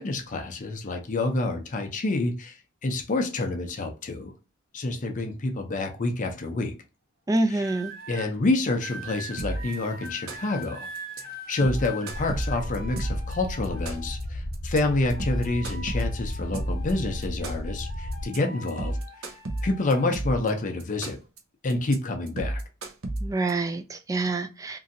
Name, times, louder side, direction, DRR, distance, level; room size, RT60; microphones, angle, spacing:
voice 1, 0.0-2.6 2.8-4.3 4.7-6.7 7.5-7.7 8.1-10.9 11.2-19.0 19.6-21.2 21.6-22.6, left 2 dB, 40° left, 0.5 m, -28 dB
voice 2, 7.3-7.9 23.2-24.8, right 2 dB, 15° right, 0.3 m, -26 dB
sound 1, 7.6-8.3 8.8-14.3 14.7-17.3 17.6-20.2 20.9-21.2, equal, 50° right, 0.9 m, -43 dB
sound 2, 9.4-9.7 10.0-10.6 10.9-11.2 11.5-13.3 13.6-14.2 14.5-14.8 15.1-16.9 17.2-17.8 18.1-18.4 18.7-20.5 20.8-21.4 21.7-21.9 22.3-23.5, right 1 dB, 80° right, 0.7 m, -31 dB
sound 3, 12.1-18.3, left 1 dB, 75° left, 0.7 m, -34 dB
3.0 x 2.7 x 2.5 m
head